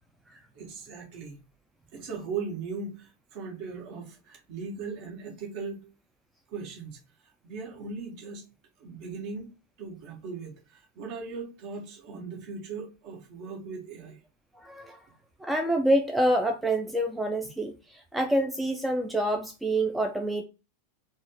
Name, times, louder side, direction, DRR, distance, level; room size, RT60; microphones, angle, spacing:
voice 1, 0.5-1.4 1.9-5.9 6.5-7.0 7.4-8.4 8.8-9.5 9.8-14.2, right 4 dB, 45° right, 1.5 m, -38 dB
voice 2, 14.6-15.0 15.4-20.4, right 1 dB, 5° right, 0.4 m, -27 dB
4.0 x 2.2 x 3.8 m
figure-of-eight pair, 90°, 0 cm